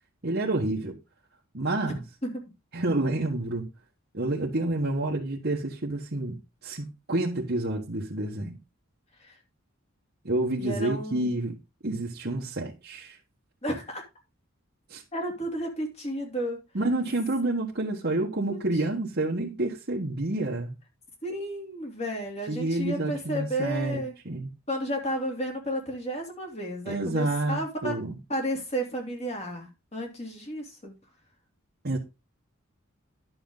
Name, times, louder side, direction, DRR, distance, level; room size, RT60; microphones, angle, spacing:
voice 1, 0.2-1.0 1.5-2.0 2.7-3.7 4.1-8.6 10.2-11.5 11.8-13.2 14.9-15.0 16.7-20.7 22.5-24.5 26.8-28.1 31.8-32.0, right 2 dB, 50° right, 1.5 m, -29 dB
voice 2, 10.6-11.3 13.6-14.0 15.1-16.6 18.5-18.6 21.2-24.1 24.7-28.0 28.3-31.0, equal, 30° left, 3.1 m, -32 dB
10.5 x 6.9 x 3.9 m
head